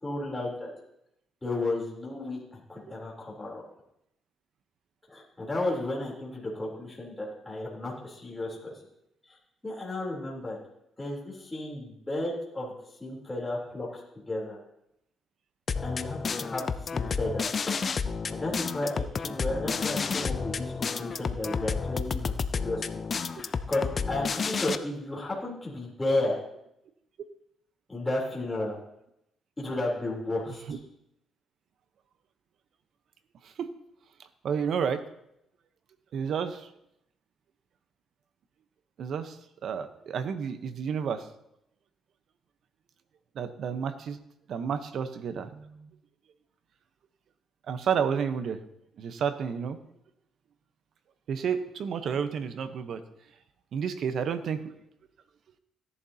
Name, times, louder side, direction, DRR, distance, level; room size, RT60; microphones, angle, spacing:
voice 1, 0.0-0.7 1.4-3.6 5.1-8.7 9.3-9.4 9.6-10.6 11.0-12.7 13.0-14.0 14.3-14.6 15.8-17.8 18.3-22.8 23.4-26.4 27.9-28.8 29.6-30.8, left 2 dB, 15° left, -4 dB, 3.5 m, -33 dB
sound 1, 15.7-24.8, left 5 dB, 40° left, 0.6 m, -31 dB
voice 2, 34.4-35.0 36.1-36.7 39.0-39.4 39.6-41.2 43.4-44.2 44.5-45.9 47.7-48.6 49.0-49.8 51.3-53.0 53.7-54.6, right 7 dB, 65° right, 10 dB, 0.9 m, -30 dB
17.0 x 11.0 x 2.8 m, 0.81 s
cardioid pair, 90°, 0 cm